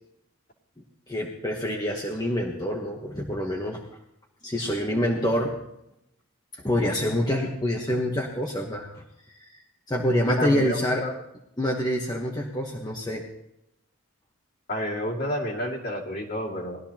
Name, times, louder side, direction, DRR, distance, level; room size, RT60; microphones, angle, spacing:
voice 1, 1.1-3.8 4.4-5.5 6.5-8.9 9.3-9.6 9.9-11.0 11.6-13.2, equal, 20° left, -2 dB, 1.1 m, -26 dB
voice 2, 10.3-11.1 14.7-16.8, equal, 45° left, -2 dB, 2.3 m, -29 dB
20.0 x 12.5 x 2.9 m, 0.83 s
head